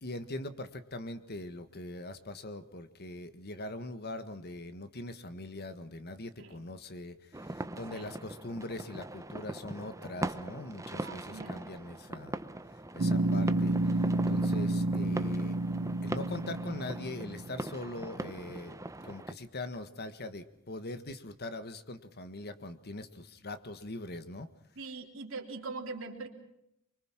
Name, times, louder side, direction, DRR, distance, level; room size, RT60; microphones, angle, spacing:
voice 1, 0.0-12.4 12.9-13.8 14.3-15.6 16.0-18.8 19.0-24.5, left 2 dB, 50° left, 11 dB, 1.5 m, -42 dB
sound 1, 7.3-19.3, right 1 dB, 15° right, 0.8 m, -41 dB
voice 2, 11.0-11.7 24.7-26.3, right 3 dB, 65° right, 3 dB, 3.4 m, -42 dB
sound 2, 13.0-17.6, right 2 dB, 50° right, 0.8 m, -30 dB
25.0 x 24.0 x 6.0 m, 0.80 s
head